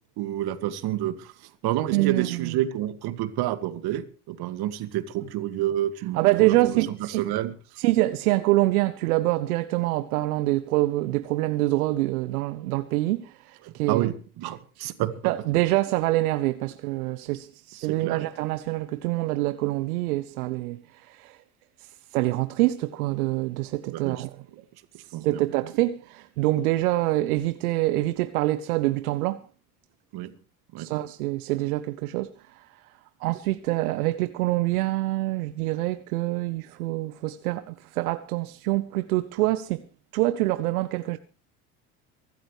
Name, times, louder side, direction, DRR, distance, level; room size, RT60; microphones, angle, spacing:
voice 1, 0.2-1.3 1.6-6.7 7.0-7.5 13.6-15.1 17.9-18.2 23.9-24.2 25.1-25.4 30.1-30.3 30.7-30.9, right 13 dB, 55° right, 2.2 m, -29 dB
voice 2, 1.9-2.6 6.1-7.2 7.8-14.1 14.8-14.9 15.2-21.4 22.1-24.4 25.2-29.4 30.8-32.7 33.2-39.8 40.1-41.2, right 18 dB, 75° right, 1.1 m, -25 dB
24.0 x 13.0 x 3.3 m
hypercardioid pair, 70°, 45 cm